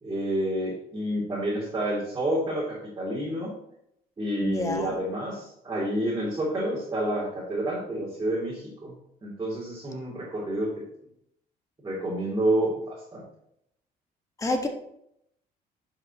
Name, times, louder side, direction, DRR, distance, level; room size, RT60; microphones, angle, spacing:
voice 1, 0.0-3.5 4.2-8.9 9.2-10.7 11.8-13.2, right 1 dB, 25° right, 3.0 m, -29 dB
voice 2, 4.4-4.9 14.4-14.7, left 2 dB, 20° left, 1.5 m, -28 dB
11.0 x 5.8 x 3.0 m
cardioid pair, 110°, 17 cm